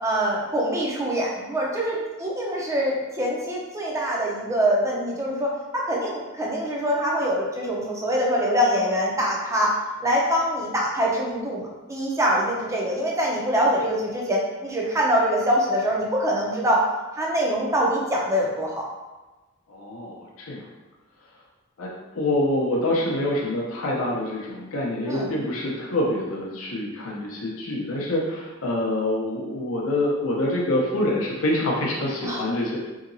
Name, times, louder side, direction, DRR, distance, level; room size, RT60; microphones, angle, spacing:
voice 1, 0.0-9.8 10.0-16.8 17.1-18.8 25.1-25.3 32.2-32.4, equal, 15° right, -3 dB, 0.5 m, -24 dB
voice 2, 19.7-20.6 21.8-21.9 22.1-32.8, left 1 dB, 80° left, -3 dB, 0.6 m, -26 dB
2.8 x 2.8 x 2.6 m, 1.2 s
head